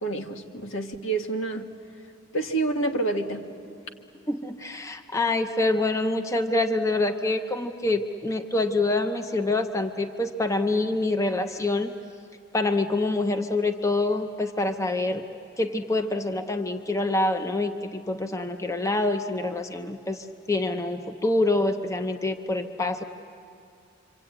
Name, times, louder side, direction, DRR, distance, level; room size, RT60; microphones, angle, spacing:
voice 1, 0.0-1.7 2.3-3.5, right 2 dB, 75° left, 4 dB, 1.7 m, -28 dB
voice 2, 4.3-11.9 12.5-15.2 15.6-23.0, left 2 dB, 15° left, 6 dB, 0.7 m, -26 dB
26.0 x 25.5 x 8.8 m, 2.5 s
head